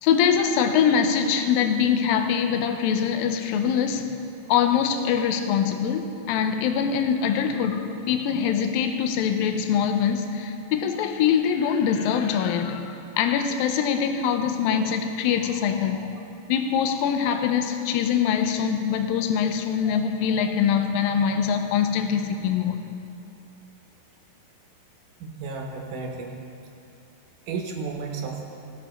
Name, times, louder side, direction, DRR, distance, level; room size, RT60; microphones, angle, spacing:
voice 1, 0.0-4.1 4.5-16.2 16.5-22.8, left 7 dB, 80° left, 6 dB, 2.3 m, -23 dB
voice 2, 25.2-26.4 27.5-28.4, right 4 dB, 70° right, 1 dB, 2.4 m, -33 dB
18.0 x 7.9 x 4.3 m, 2.7 s
omnidirectional pair, 4.3 m